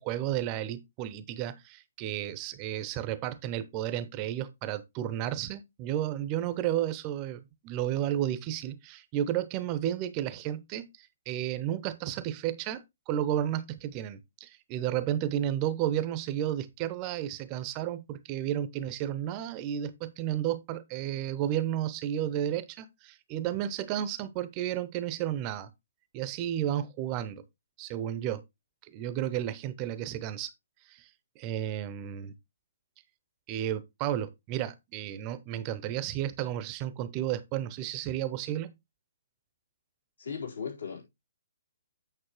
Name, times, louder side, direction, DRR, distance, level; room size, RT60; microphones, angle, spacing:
voice 1, 0.0-25.7 26.1-27.4 27.8-28.4 28.8-30.5 30.9-31.1 31.4-32.3 33.5-38.7, right 11 dB, 30° right, 0.7 m, -32 dB
voice 2, 40.2-41.0, left 6 dB, 75° left, 4.0 m, -37 dB
8.8 x 6.2 x 3.0 m
figure-of-eight pair, 130°, 0 cm